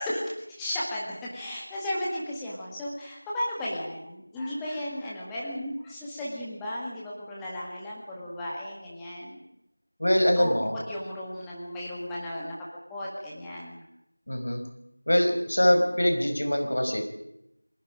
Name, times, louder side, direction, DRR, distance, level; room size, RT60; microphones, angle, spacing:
voice 1, 0.0-9.4 10.4-10.5 10.9-12.5 12.9-13.8, left 1 dB, 5° left, -6 dB, 1.9 m, -34 dB
voice 2, 10.0-10.7 14.3-14.6 15.1-17.0, equal, 60° left, 4 dB, 5.0 m, -23 dB
29.0 x 21.0 x 5.1 m, 0.83 s
figure-of-eight pair, 175°, 0 cm